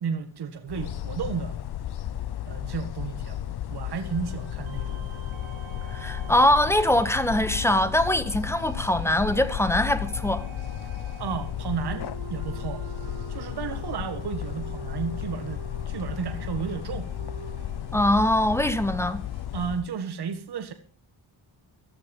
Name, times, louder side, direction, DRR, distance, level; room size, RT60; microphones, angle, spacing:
voice 1, 0.0-1.6 2.5-5.1 11.2-12.9 13.3-17.1 19.5-20.7, right 6 dB, 55° right, 1.7 m, -33 dB
sound 1, 0.7-19.9, left 12 dB, 55° left, 0.8 m, -34 dB
sound 2, 3.7-19.5, right 5 dB, 85° right, 3.2 m, -45 dB
voice 2, 5.9-10.4 17.9-19.2, left 1 dB, 5° left, 1.4 m, -22 dB
15.0 x 12.5 x 5.4 m
wide cardioid pair, 145°, 46 cm